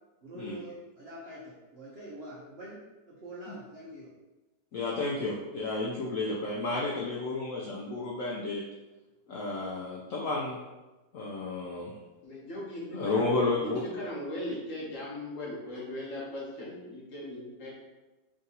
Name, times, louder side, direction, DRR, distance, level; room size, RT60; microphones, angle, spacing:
voice 1, 0.2-4.1, right 1 dB, 80° right, -6 dB, 0.5 m, -45 dB
voice 2, 4.7-8.6 9.3-10.6 11.1-11.9 12.9-13.8, left 3 dB, 85° left, -4 dB, 0.7 m, -31 dB
voice 3, 12.2-13.3 13.6-17.7, left 1 dB, 50° left, -5 dB, 1.2 m, -38 dB
3.5 x 2.7 x 3.9 m, 1.1 s
omnidirectional pair, 2.0 m